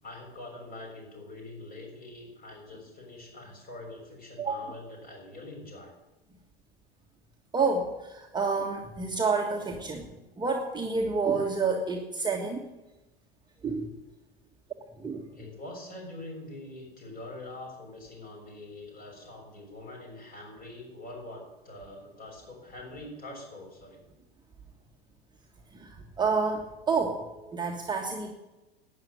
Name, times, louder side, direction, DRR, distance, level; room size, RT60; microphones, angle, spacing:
voice 1, 0.0-5.9 15.3-24.0, left 2 dB, 30° left, 1 dB, 6.8 m, -44 dB
voice 2, 7.5-10.1 10.4-12.7 13.6-13.9 15.0-15.3 25.7-28.3, right 4 dB, 15° right, 1 dB, 1.6 m, -29 dB
12.0 x 9.6 x 9.3 m, 1.0 s
figure-of-eight pair, 85°, 30 cm